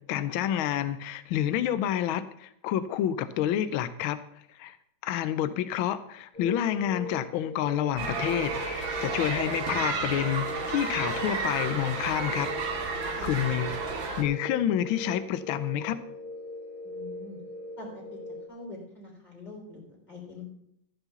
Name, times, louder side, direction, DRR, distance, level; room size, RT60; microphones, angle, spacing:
voice 1, 0.1-4.2 4.5-4.8 5.0-13.7 14.2-16.0, left 11 dB, 85° left, 14 dB, 1.5 m, -29 dB
sound 1, 6.3-18.5, left 1 dB, 15° right, 2.2 m, -40 dB
sound 2, 8.0-14.2, right 4 dB, 70° right, 2.4 m, -32 dB
voice 2, 16.8-17.4 17.8-18.2 18.5-20.4, left 3 dB, 20° left, -3 dB, 3.8 m, -44 dB
14.0 x 6.0 x 6.9 m, 0.72 s
omnidirectional pair, 2.2 m